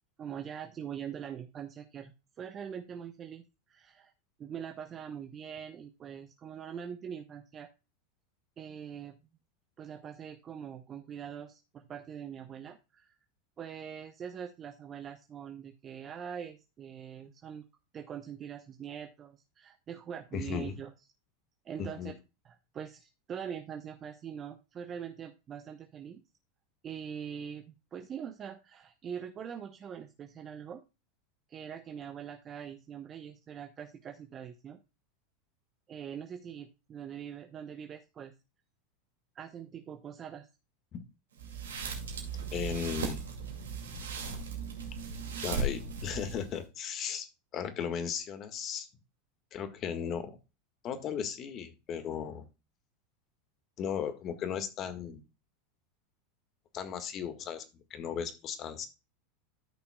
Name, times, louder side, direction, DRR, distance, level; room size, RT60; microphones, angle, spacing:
voice 1, 0.2-4.1 4.4-7.7 8.6-9.2 9.8-13.2 13.6-17.6 17.9-20.9 21.6-22.1 22.4-26.2 26.8-30.8 31.5-34.8 35.9-38.3 39.3-40.5, right 8 dB, 35° right, 6 dB, 0.9 m, -43 dB
voice 2, 20.3-20.7 21.8-22.1 42.5-43.2 45.4-48.9 49.5-50.4 50.8-52.5 53.8-55.2 56.7-58.9, left 8 dB, 40° left, 9 dB, 1.7 m, -36 dB
sound 1, 41.4-46.6, right 3 dB, 85° right, 2.3 m, -37 dB
13.5 x 5.9 x 2.3 m, 0.28 s
hypercardioid pair, 95°, 0 cm